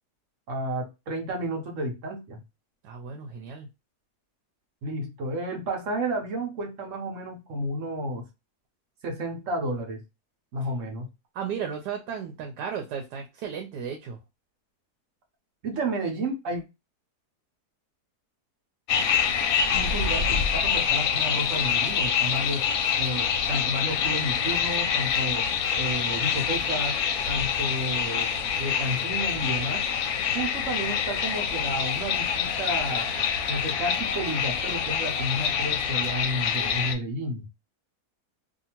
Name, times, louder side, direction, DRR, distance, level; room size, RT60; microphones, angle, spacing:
voice 1, 0.5-2.4 4.8-8.3 9.0-10.0 10.5-11.1 15.6-16.6 19.7-22.7 23.0-25.5 25.7-27.0 27.3-28.3 28.6-29.8 30.3-33.1 33.5-37.5, right 1 dB, 60° right, 1.0 m, -31 dB
voice 2, 2.8-3.7 11.3-14.2, right 7 dB, 85° right, 1.2 m, -34 dB
sound 1, 18.9-36.9, left 7 dB, 70° left, 1.0 m, -26 dB
2.7 x 2.5 x 2.8 m
omnidirectional pair, 1.7 m